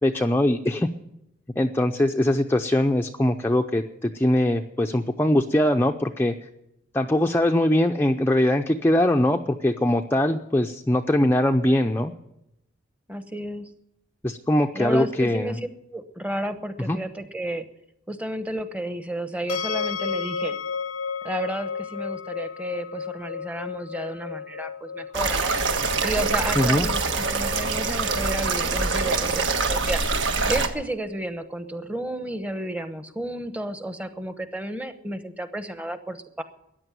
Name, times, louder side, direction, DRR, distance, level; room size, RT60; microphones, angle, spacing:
voice 1, 0.0-0.9 1.6-6.5 6.9-12.1 14.2-15.5 16.9-17.0 26.6-26.9, left 1 dB, 10° left, 3 dB, 0.5 m, -22 dB
voice 2, 13.1-13.7 14.7-17.6 18.1-20.6 21.2-25.5 26.0-30.0 30.5-36.4, right 1 dB, 5° right, 9 dB, 1.0 m, -32 dB
sound 1, 19.5-32.5, left 6 dB, 90° left, 0.7 m, -35 dB
sound 2, 25.1-30.7, right 4 dB, 65° right, 1.5 m, -24 dB
14.0 x 10.0 x 9.2 m, 0.82 s
head